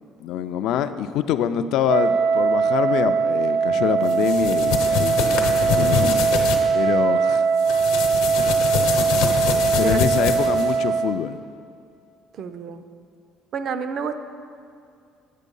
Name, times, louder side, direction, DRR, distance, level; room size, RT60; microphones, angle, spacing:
voice 1, 0.2-6.2 6.7-7.4 9.8-11.4, left 9 dB, 60° left, 11 dB, 0.3 m, -25 dB
Wind instrument woodwind instrument, 1.8-11.2, right 5 dB, 70° right, 0.8 m, -21 dB
sound 1, 4.1-6.6 7.6-10.8, left 7 dB, 80° left, 0.9 m, -25 dB
voice 2, 12.3-12.8 13.5-14.2, right 6 dB, 40° right, 10 dB, 0.4 m, -29 dB
8.4 x 6.3 x 5.3 m, 2.3 s
cardioid pair, 175°, 0 cm